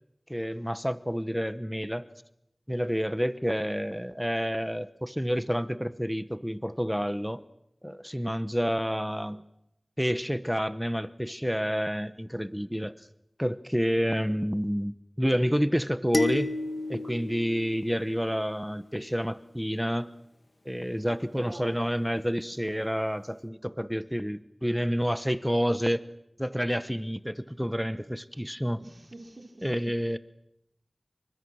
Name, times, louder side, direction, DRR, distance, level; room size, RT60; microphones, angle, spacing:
voice 1, 0.3-2.1 2.7-7.4 7.8-9.4 10.0-12.9 13.4-16.5 16.9-20.1 20.6-26.0 26.4-28.8 29.6-30.2, equal, ahead, 14 dB, 0.9 m, -29 dB
sound 1, 16.1-18.6, left 3 dB, 65° left, 1.9 m, -32 dB
voice 2, 21.1-21.6 28.8-29.7, right 2 dB, 85° right, -1 dB, 5.0 m, -46 dB
28.5 x 24.5 x 6.4 m, 0.81 s
wide cardioid pair, 40°, 0 cm